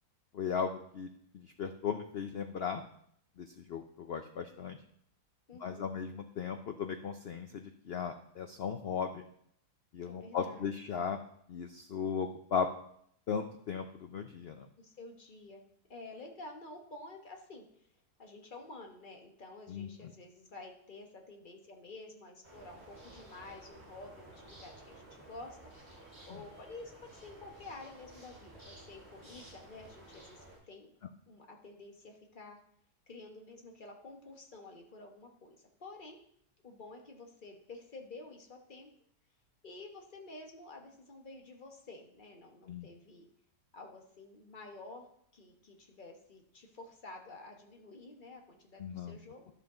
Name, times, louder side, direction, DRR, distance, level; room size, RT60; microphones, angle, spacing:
voice 1, 0.3-1.1 1.3-2.8 3.4-4.8 5.6-9.2 9.9-11.2 11.5-12.7 13.3-14.7 19.7-19.9 26.3-26.4 42.7-42.9 48.8-49.2, left 6 dB, 85° left, 6 dB, 0.5 m, -37 dB
voice 2, 5.5-5.9 10.0-10.7 14.8-15.6 15.9-17.9 18.2-25.6 26.3-30.9 31.3-32.6 33.1-36.2 36.6-38.9 39.6-43.3 43.7-45.1 45.3-49.5, left 2 dB, 35° left, 2 dB, 1.3 m, -50 dB
sound 1, 22.4-30.6, right 1 dB, 10° right, 3.3 m, -54 dB
12.5 x 5.6 x 3.8 m, 0.68 s
omnidirectional pair, 1.8 m